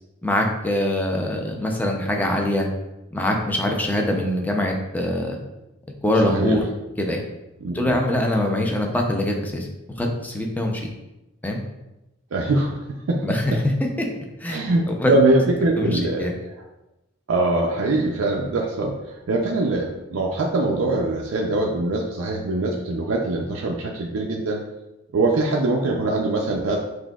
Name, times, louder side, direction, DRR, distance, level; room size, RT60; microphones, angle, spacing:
voice 1, 0.2-2.7 3.1-5.4 6.0-6.6 7.0-7.2 7.7-9.7 10.0-10.8 11.4-11.6 13.2-13.6 14.0-14.1 14.4-14.7 15.0-15.1 15.8-16.3, left 1 dB, 10° left, 1 dB, 0.5 m, -23 dB
voice 2, 6.2-6.6 7.6-8.0 12.3-13.6 14.5-16.3 17.3-24.6 25.1-26.8, right 2 dB, 85° right, 0 dB, 0.5 m, -23 dB
6.0 x 2.6 x 2.3 m, 0.97 s
head